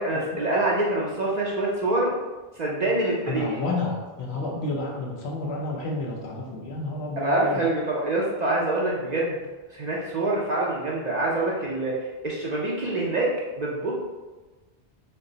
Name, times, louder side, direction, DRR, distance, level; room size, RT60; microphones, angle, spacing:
voice 1, 0.0-2.1 2.6-3.6 7.2-9.4 9.7-13.3 13.6-13.9, right 2 dB, 50° right, -4 dB, 0.6 m, -25 dB
voice 2, 3.3-7.6, left 2 dB, 90° left, -1 dB, 1.0 m, -30 dB
4.3 x 2.0 x 3.8 m, 1.3 s
omnidirectional pair, 1.0 m